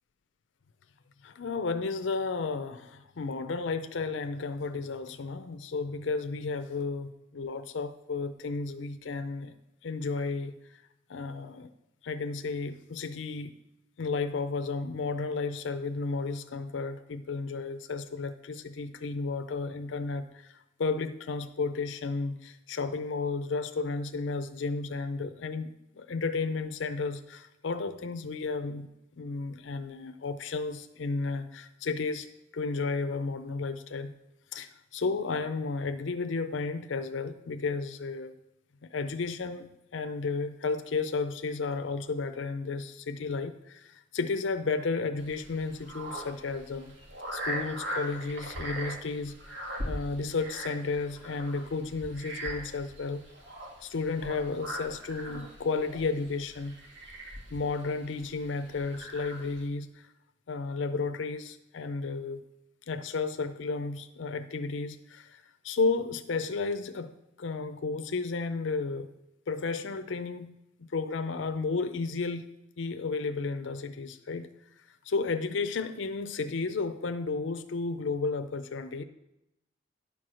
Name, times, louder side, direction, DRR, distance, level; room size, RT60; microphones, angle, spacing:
voice 1, 1.2-9.5 9.8-10.8 11.1-11.7 12.0-13.5 14.0-20.5 20.8-28.9 29.2-32.3 32.5-34.1 34.5-38.3 38.9-46.9 47.3-53.2 53.8-56.8 57.5-60.1 60.5-62.4 62.9-69.1 69.5-72.5 72.8-74.5 75.1-79.0, left 4 dB, 75° left, 10 dB, 0.5 m, -33 dB
sound 1, 45.2-59.7, right 1 dB, 70° right, 1.8 m, -40 dB
10.5 x 4.6 x 6.2 m, 0.87 s
head